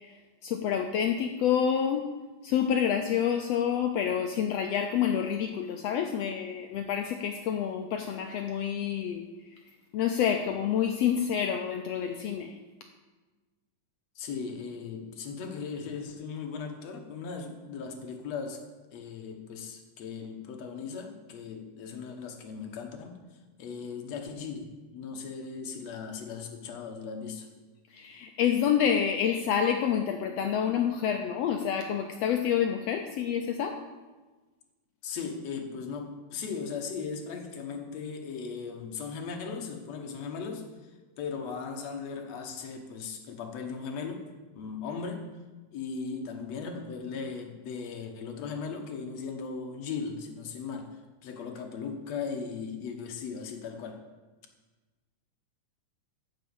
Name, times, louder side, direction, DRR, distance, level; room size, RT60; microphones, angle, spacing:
voice 1, 0.4-2.1 2.4-9.2 9.9-12.5 27.9-33.8, left 8 dB, 80° left, 5 dB, 1.4 m, -28 dB
voice 2, 14.2-18.6 18.9-23.2 23.6-27.5 35.0-40.7 41.2-44.3 44.6-45.3 45.7-54.0, left 5 dB, 60° left, 3 dB, 2.3 m, -38 dB
13.5 x 6.1 x 7.1 m, 1.3 s
omnidirectional pair, 3.6 m